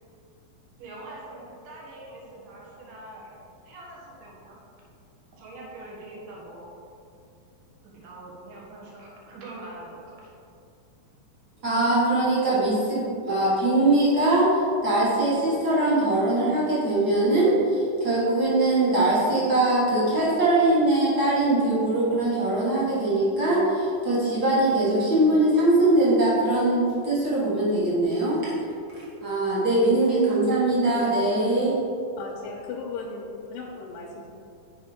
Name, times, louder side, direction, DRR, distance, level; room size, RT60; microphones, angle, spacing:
voice 1, 0.8-3.4 3.7-4.6 5.4-6.7 7.9-10.1, right 2 dB, 70° right, -3 dB, 2.9 m, -43 dB
voice 2, 11.6-28.5 28.9-31.8, right 2 dB, 40° right, -8 dB, 1.5 m, -22 dB
voice 3, 32.2-34.3, left 4 dB, 80° left, -2 dB, 2.3 m, -37 dB
6.6 x 5.1 x 5.0 m, 2.5 s
omnidirectional pair, 4.1 m